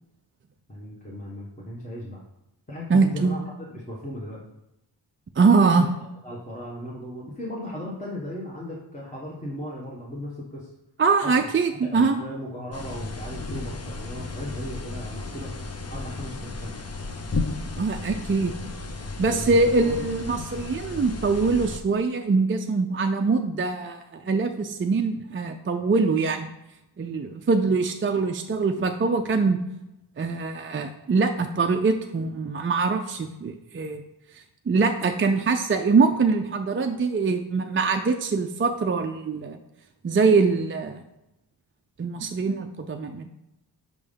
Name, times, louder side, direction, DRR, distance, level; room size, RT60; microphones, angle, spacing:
voice 1, 0.7-2.2 2.7-4.4 5.8-5.9 6.2-10.7 11.2-11.5 11.8-15.5 15.9-16.8 19.2-19.5 19.7-20.0, equal, 15° left, -5 dB, 1.2 m, -37 dB
voice 2, 2.9-3.4 5.4-5.9 11.0-12.2 17.8-18.5 19.2-26.5 27.0-29.6 30.2-34.0 34.7-39.6 40.0-41.0 42.0-43.3, right 4 dB, 30° right, 5 dB, 0.4 m, -23 dB
sound 1, 12.7-21.8, left 3 dB, 35° left, 0.6 m, -34 dB
5.3 x 3.5 x 5.1 m, 0.90 s
cardioid pair, 50°, 47 cm